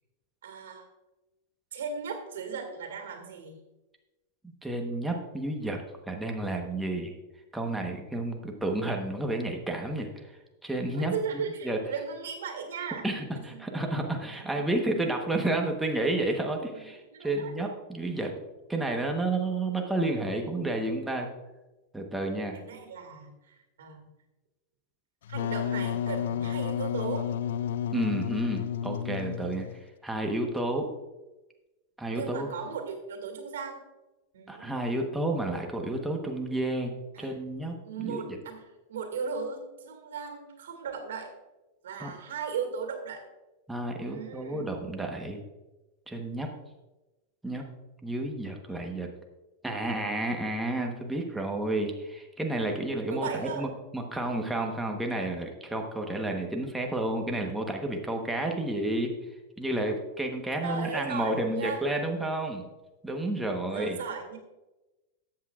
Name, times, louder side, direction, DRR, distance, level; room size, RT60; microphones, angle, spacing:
voice 1, 0.4-0.9 1.7-3.6 8.1-8.3 10.9-13.1 13.4-13.8 14.5-14.6 16.7-17.7 22.5-24.1 25.3-27.3 32.1-33.8 34.3-34.7 37.1-37.4 37.8-41.3 41.8-43.3 43.9-44.7 53.1-53.7 60.6-61.9 63.7-64.4, right 6 dB, 90° right, 5 dB, 2.1 m, -37 dB
voice 2, 4.6-5.8 6.1-7.1 7.5-10.3 10.6-11.8 13.0-18.3 18.7-21.3 21.9-22.6 27.9-29.7 30.0-30.9 32.0-32.5 34.5-36.9 37.2-38.4 42.0-42.1 43.7-45.4 46.1-46.5 47.4-47.6 48.0-49.1 49.6-59.1 59.6-62.6 63.0-64.0, right 2 dB, 5° right, 2 dB, 1.1 m, -31 dB
Wind instrument woodwind instrument, 25.3-29.8, left 9 dB, 80° left, 0.3 m, -31 dB
13.5 x 8.3 x 2.4 m, 1.1 s
supercardioid pair, 135°, 0 cm